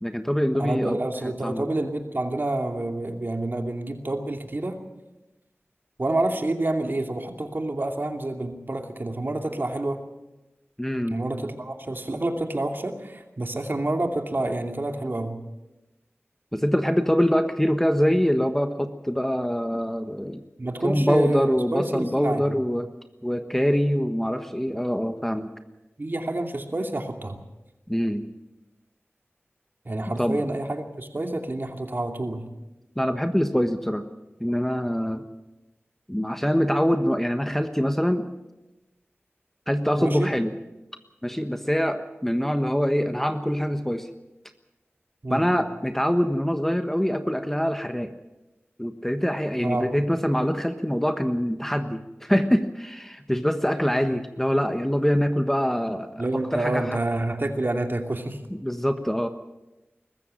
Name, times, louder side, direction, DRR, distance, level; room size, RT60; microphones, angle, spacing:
voice 1, 0.0-1.0 1.2-1.6 10.8-11.2 16.5-20.4 20.8-22.9 23.2-25.5 27.9-28.3 30.2-30.4 33.0-34.0 34.4-35.2 36.1-38.2 39.7-40.5 41.2-44.1 45.3-48.1 48.8-56.2 56.5-57.0 58.5-59.3, equal, 5° left, 8 dB, 1.3 m, -24 dB
voice 2, 0.6-4.8 6.0-10.0 11.1-15.4 20.6-22.6 26.0-27.4 29.8-32.4 40.0-40.3 45.2-45.5 49.6-49.9 56.2-58.4, right 2 dB, 50° right, 5 dB, 2.7 m, -28 dB
22.0 x 14.0 x 9.0 m, 1.0 s
wide cardioid pair, 55°, 5 cm